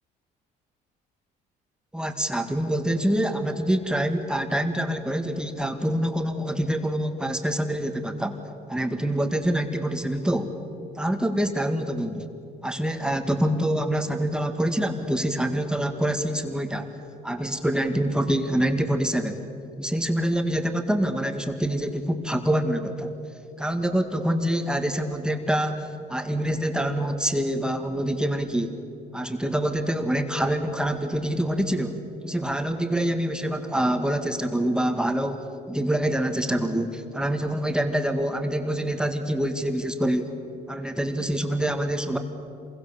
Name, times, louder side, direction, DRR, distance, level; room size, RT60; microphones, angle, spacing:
voice 1, 1.9-8.4 8.7-10.5 11.0-12.2 12.6-16.9 17.2-19.4 19.8-23.1 23.6-28.8 29.1-40.3 40.7-42.2, right 1 dB, 5° right, 5 dB, 1.8 m, -26 dB
27.5 x 22.0 x 7.1 m, 2.7 s
cardioid pair, 110°, 17 cm